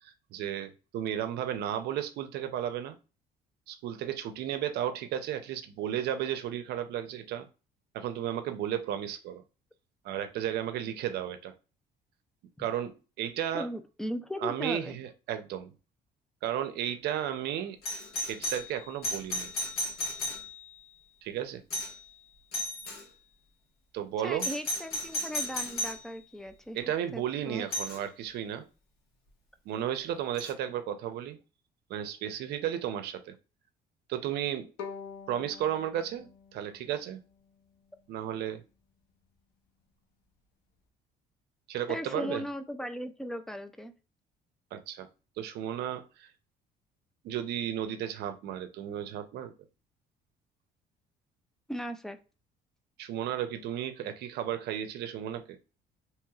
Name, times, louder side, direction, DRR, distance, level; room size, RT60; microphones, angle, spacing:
voice 1, 0.0-3.0 3.7-7.5 7.9-9.4 10.0-11.5 12.6-13.7 14.4-15.7 16.4-17.8 18.2-19.5 21.2-21.6 23.9-24.5 26.7-28.7 29.7-31.4 31.9-33.3 34.1-34.7 35.3-37.2 38.1-38.6 41.7-42.4 44.7-45.1 45.4-46.3 47.2-49.5 53.0-55.6, right 10 dB, 75° right, 0.6 m, -34 dB
voice 2, 13.5-15.0 24.2-26.8 27.1-27.7 41.9-43.9 51.7-52.2, equal, 5° left, 0.3 m, -37 dB
Doorbell, 17.8-20.8 21.7-22.1 22.5-23.0 24.4-26.1 27.7-28.0 30.4-30.5, left 1 dB, 65° left, 1.3 m, -34 dB
Bowed string instrument, 34.8-37.9, left 6 dB, 85° left, 0.7 m, -46 dB
3.0 x 2.9 x 2.3 m
cardioid pair, 110°, 17 cm